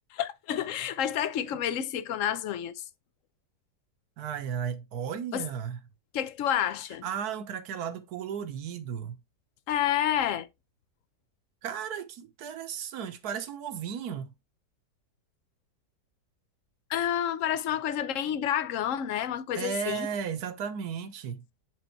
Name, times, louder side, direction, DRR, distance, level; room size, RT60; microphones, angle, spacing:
voice 1, 0.1-2.7 5.3-5.5 6.1-7.0 9.7-10.5 16.9-20.1, left 10 dB, 60° left, 0.9 m, -29 dB
voice 2, 4.2-5.8 7.0-9.2 11.6-14.3 19.5-21.4, right 7 dB, 65° right, 1.5 m, -34 dB
8.1 x 3.9 x 4.4 m
omnidirectional pair, 1.8 m